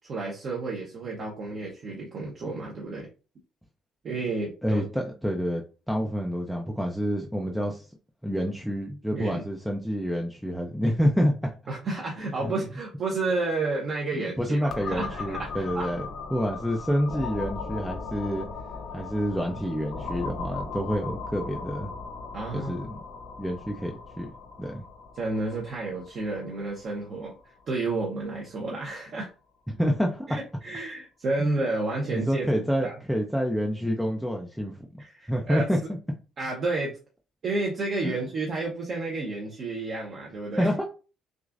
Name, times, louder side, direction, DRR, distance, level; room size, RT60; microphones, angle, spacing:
voice 1, 0.0-3.1 4.0-4.8 9.1-9.4 11.7-15.9 22.3-22.9 25.1-27.3 27.7-29.3 30.3-32.9 35.0-35.7 36.4-37.0 37.4-40.7, right 3 dB, 40° right, -2 dB, 0.9 m, -31 dB
voice 2, 4.6-7.9 8.2-11.5 12.4-12.5 14.1-18.5 18.9-21.9 22.5-23.0 23.4-24.3 24.6-24.8 29.7-30.3 31.4-31.5 32.1-35.8 38.0-38.1 40.6-40.9, equal, ahead, 0 dB, 0.5 m, -28 dB
sound 1, 14.7-28.3, left 4 dB, 50° left, 0.9 m, -38 dB
6.2 x 2.5 x 2.5 m, 0.33 s
cardioid pair, 170°, 0 cm